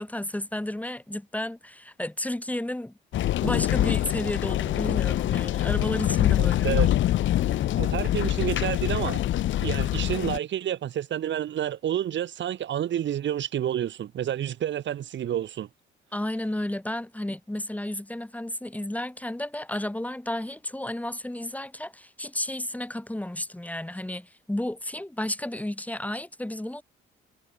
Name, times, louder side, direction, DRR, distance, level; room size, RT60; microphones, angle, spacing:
voice 1, 0.0-2.9 3.4-6.8 16.1-26.8, left 1 dB, 5° left, 3.0 m, -32 dB
sound 1, 3.1-10.4, left 13 dB, 70° left, 0.9 m, -25 dB
voice 2, 6.4-6.9 7.8-9.2 9.6-15.7, right 10 dB, 65° right, 3.2 m, -29 dB
cardioid pair, 90°, 20 cm